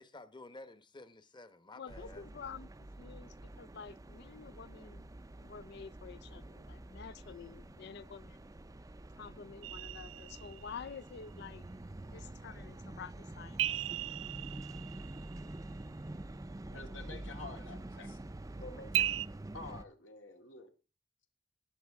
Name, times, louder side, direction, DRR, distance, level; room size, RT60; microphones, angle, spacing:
voice 1, 0.0-2.2, left 2 dB, 25° left, 1.0 m, -52 dB
voice 2, 1.8-2.7 3.0-5.1 5.4-8.5 9.2-11.6 12.1-13.7, left 6 dB, 60° left, 0.5 m, -49 dB
sound 1, 1.9-19.8, right 1 dB, 20° right, 0.5 m, -47 dB
sound 2, 9.6-10.9 13.6-15.6 18.9-19.3, right 12 dB, 85° right, 0.5 m, -36 dB
voice 3, 16.7-18.2 18.6-19.0 19.5-20.7, left 3 dB, 80° left, 2.5 m, -48 dB
19.5 x 7.4 x 3.5 m
head